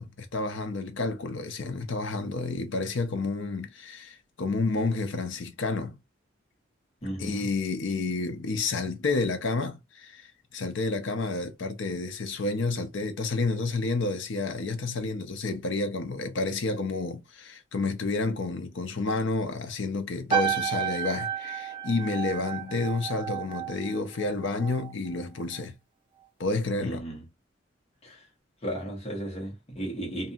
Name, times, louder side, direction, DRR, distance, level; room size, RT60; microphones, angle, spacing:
voice 1, 0.0-6.0 7.2-10.3 10.5-25.7 26.4-27.0, left 3 dB, 75° left, 0.6 m, -30 dB
voice 2, 7.0-7.5 26.8-27.3 28.0-28.2 28.6-30.3, right 1 dB, 30° left, 1.2 m, -35 dB
sound 1, 20.3-24.9 25.2-25.6, right 8 dB, 25° right, 1.0 m, -32 dB
2.7 x 2.6 x 2.4 m
head